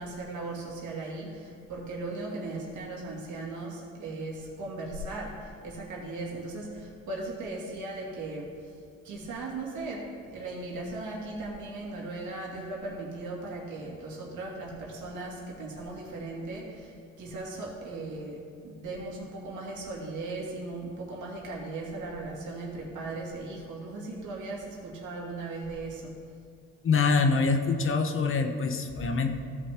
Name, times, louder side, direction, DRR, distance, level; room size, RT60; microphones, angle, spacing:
voice 1, 0.0-8.7 9.0-26.1, right 2 dB, 75° right, -3 dB, 2.5 m, -38 dB
voice 2, 26.8-29.3, left 4 dB, 45° left, 6 dB, 0.9 m, -25 dB
15.5 x 5.8 x 3.7 m, 2.3 s
cardioid pair, 90°, 30 cm